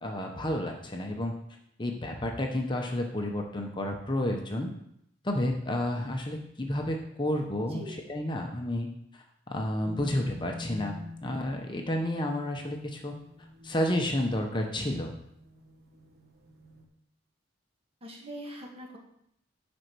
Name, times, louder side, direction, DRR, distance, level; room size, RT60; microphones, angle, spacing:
voice 1, 0.0-1.3 1.8-4.7 5.2-11.0 11.2-13.1 13.6-15.1, left 1 dB, 25° left, 2 dB, 0.9 m, -31 dB
voice 2, 7.6-8.0 18.0-19.0, equal, 30° right, 0 dB, 1.8 m, -42 dB
sound 1, 9.8-16.8, left 2 dB, 55° right, 1.5 m, -47 dB
9.7 x 5.3 x 6.1 m, 0.74 s
head